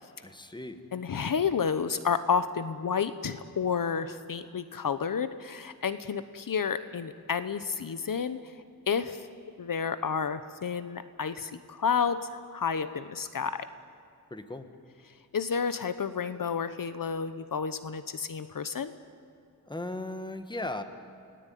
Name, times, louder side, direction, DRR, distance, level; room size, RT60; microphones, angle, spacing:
voice 1, 0.2-0.8 14.3-14.7 19.6-20.8, left 2 dB, 10° left, 8 dB, 1.6 m, -37 dB
voice 2, 0.9-8.5 8.9-9.3 9.6-13.7 15.3-18.9, left 6 dB, 60° left, 12 dB, 1.0 m, -30 dB
30.0 x 19.0 x 9.3 m, 2.5 s
wide cardioid pair, 145°, 38 cm